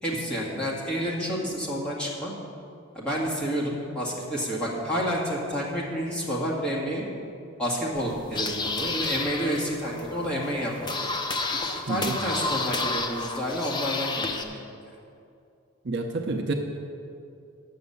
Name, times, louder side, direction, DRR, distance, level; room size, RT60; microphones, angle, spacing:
voice 1, 0.0-2.3 2.9-7.1 7.6-10.7 11.0-11.1 11.5-14.5, equal, 5° left, -6 dB, 1.9 m, -29 dB
sound 1, 8.0-14.4, left 3 dB, 20° left, 0.6 m, -31 dB
voice 2, 11.9-12.2 15.8-16.5, right 3 dB, 55° right, 4 dB, 0.7 m, -29 dB
9.3 x 7.0 x 7.0 m, 2.5 s
head